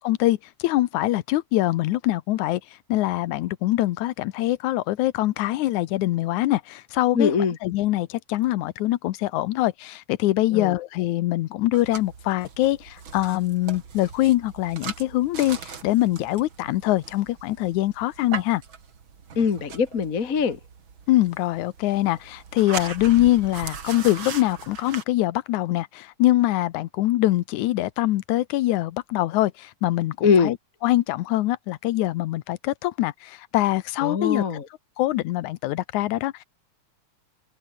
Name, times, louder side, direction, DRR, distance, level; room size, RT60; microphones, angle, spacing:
voice 1, 0.0-2.6 2.9-7.3 7.6-18.6 21.1-30.6 30.8-34.4 35.0-36.4, left 16 dB, 90° left, 2.3 m, -23 dB
voice 2, 7.1-7.6 10.5-10.7 19.3-20.6 30.2-30.5 34.0-34.7, left 6 dB, 35° left, 1.5 m, -22 dB
sound 1, 11.7-25.0, right 6 dB, 45° right, 2.9 m, -39 dB
omnidirectional pair, 3.3 m